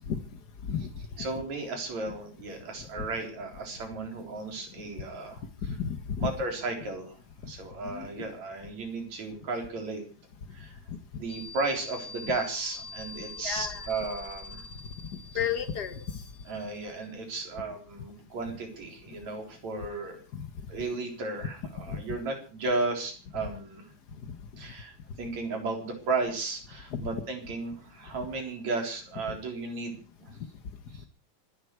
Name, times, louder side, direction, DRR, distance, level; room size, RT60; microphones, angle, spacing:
voice 1, 1.2-5.4 6.2-7.2 7.5-10.0 10.5-10.8 11.2-14.6 16.5-20.2 20.7-23.8 24.6-30.4 30.9-31.0, right 3 dB, 70° right, 3 dB, 5.2 m, -34 dB
voice 2, 5.6-6.3 7.8-8.3 12.3-12.4 13.4-13.9 15.3-16.0 20.3-20.5 21.9-22.0 24.2-24.3 26.9-27.2 29.3-29.4, left 8 dB, 60° left, 11 dB, 1.1 m, -32 dB
sound 1, 11.3-17.1, left 3 dB, 30° left, 1.8 m, -45 dB
25.5 x 11.5 x 4.7 m, 0.38 s
omnidirectional pair, 3.3 m